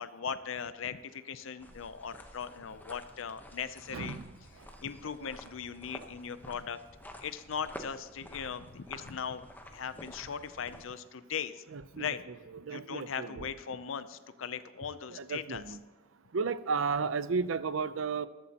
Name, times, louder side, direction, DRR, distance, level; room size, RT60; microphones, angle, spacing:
voice 1, 0.0-4.2 4.8-6.8 7.2-9.5 9.7-11.6 11.9-12.2 12.7-15.6, left 7 dB, 70° left, 13 dB, 0.5 m, -39 dB
sound 1, 1.6-10.9, left 1 dB, 10° left, 1.0 m, -50 dB
voice 2, 3.9-4.3 11.7-12.1 12.6-13.5 15.1-15.8 16.3-18.3, right 5 dB, 70° right, 15 dB, 0.6 m, -33 dB
14.0 x 12.5 x 2.9 m, 1.3 s
head